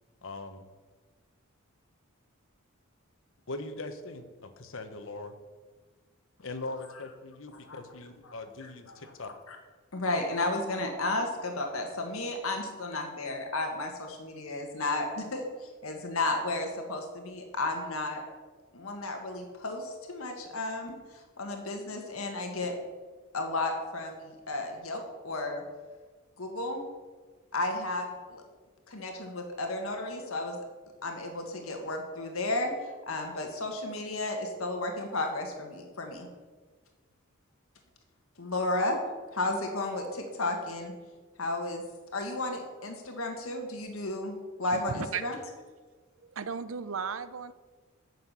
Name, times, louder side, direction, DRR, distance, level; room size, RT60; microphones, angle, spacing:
voice 1, 0.2-0.6 3.5-5.4 6.4-9.3, left 2 dB, 65° left, 8 dB, 1.2 m, -41 dB
voice 2, 8.6-9.0 9.5-9.6 9.9-18.2 18.7-22.7 23.3-25.6 26.4-26.8 27.5-28.4 28.9-30.6 31.0-32.7 33.1-36.3 38.4-39.0 39.3-40.9 41.4-41.8 42.1-45.4, left 2 dB, 85° left, 3 dB, 1.7 m, -33 dB
voice 3, 44.7-45.2 46.3-47.5, right 6 dB, 70° right, 13 dB, 0.7 m, -35 dB
9.6 x 6.8 x 8.2 m, 1.4 s
head